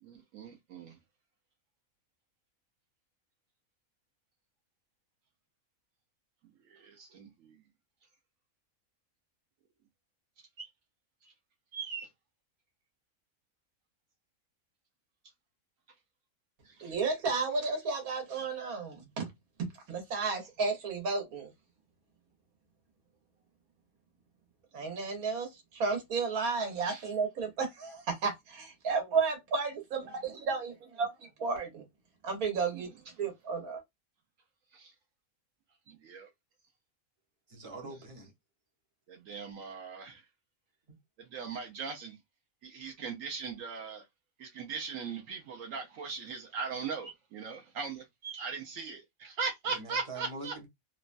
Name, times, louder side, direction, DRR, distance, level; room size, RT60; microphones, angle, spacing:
voice 1, 0.0-1.0 6.7-7.6 10.6-10.7 11.2-11.3 11.7-12.1 16.6-17.0 26.8-27.0 32.7-32.9 34.7-34.9 35.9-36.3 37.8-37.9 39.1-40.2 41.2-42.2 42.6-44.0 44.4-50.5, right 5 dB, 70° right, 1.0 m, -39 dB
voice 2, 16.8-19.3 19.6-21.5 24.7-31.1 31.4-31.8 32.2-32.9 33.2-33.8, right 4 dB, 90° right, 1.5 m, -32 dB
voice 3, 37.5-38.3 40.9-41.0 49.7-50.7, right 3 dB, 30° right, 0.7 m, -44 dB
3.0 x 2.1 x 2.4 m
omnidirectional pair, 1.5 m